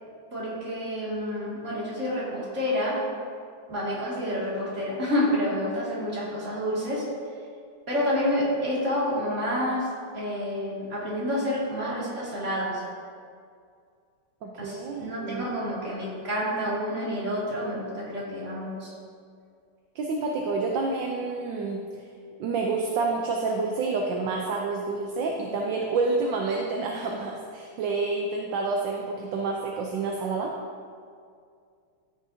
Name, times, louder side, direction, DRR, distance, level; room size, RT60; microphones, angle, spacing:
voice 1, 0.3-3.0 3.7-7.1 7.9-9.9 10.1-12.8 14.6-18.9, left 1 dB, 35° right, -7 dB, 2.6 m, -29 dB
voice 2, 14.4-15.5 19.9-21.8 22.4-30.5, right 3 dB, 75° right, 0 dB, 1.4 m, -28 dB
14.0 x 6.4 x 2.8 m, 2.3 s
omnidirectional pair, 2.1 m